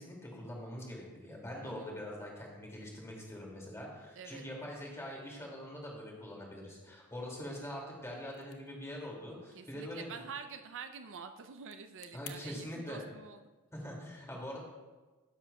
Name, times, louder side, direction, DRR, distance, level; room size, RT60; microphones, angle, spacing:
voice 1, 0.0-10.1 12.1-13.0 13.7-14.6, left 1 dB, 15° left, -2 dB, 2.4 m, -43 dB
voice 2, 1.6-2.0 4.2-4.5 9.5-13.5, right 6 dB, 60° right, 8 dB, 0.5 m, -47 dB
sound 1, 8.2-12.4, left 11 dB, 85° left, 0.7 m, -57 dB
12.5 x 10.5 x 2.3 m, 1.2 s
head